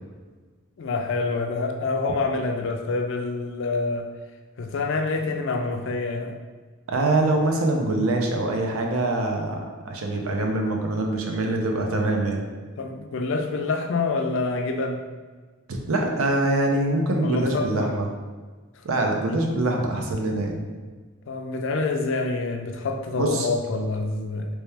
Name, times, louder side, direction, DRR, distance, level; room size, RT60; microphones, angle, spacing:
voice 1, 0.8-4.1 4.6-6.3 12.8-15.0 17.2-17.9 21.3-24.5, left 3 dB, 65° left, 4 dB, 0.4 m, -27 dB
voice 2, 6.9-12.4 15.7-18.1 18.8-20.6 23.2-23.5, right 2 dB, 85° right, 2 dB, 0.6 m, -24 dB
3.2 x 3.0 x 3.3 m, 1.4 s
head